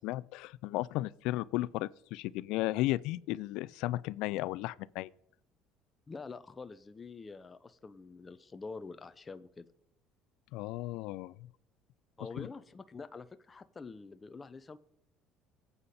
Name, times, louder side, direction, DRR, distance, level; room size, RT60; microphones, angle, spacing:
voice 1, 0.0-5.1 10.5-11.3 12.4-12.5, left 17 dB, 75° left, 0.4 m, -34 dB
voice 2, 6.1-9.7 12.2-14.8, left 4 dB, 20° left, 0.6 m, -46 dB
23.0 x 8.2 x 4.2 m
cardioid pair, 110°, 0 cm